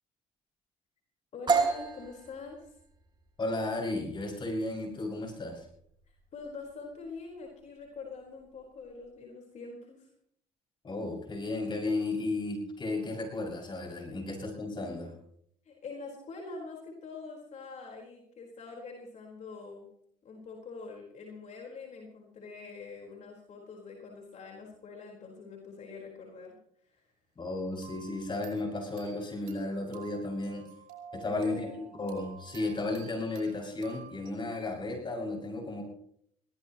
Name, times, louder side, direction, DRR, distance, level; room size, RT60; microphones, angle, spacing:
voice 1, 1.3-2.7 6.1-10.1 15.6-19.9 20.2-26.6 26.8-27.0 31.2-31.7, left 4 dB, 55° left, 0 dB, 4.4 m, -45 dB
sound 1, 1.5-9.1, right 5 dB, 35° right, 3.6 m, -35 dB
voice 2, 3.4-5.7 10.8-15.1 27.4-30.7 31.1-35.8, left 2 dB, 35° left, 0 dB, 6.5 m, -34 dB
sound 2, 27.8-34.3, right 7 dB, 90° right, 5.6 m, -52 dB
22.0 x 17.5 x 3.0 m, 0.68 s
cardioid pair, 85°, 14 cm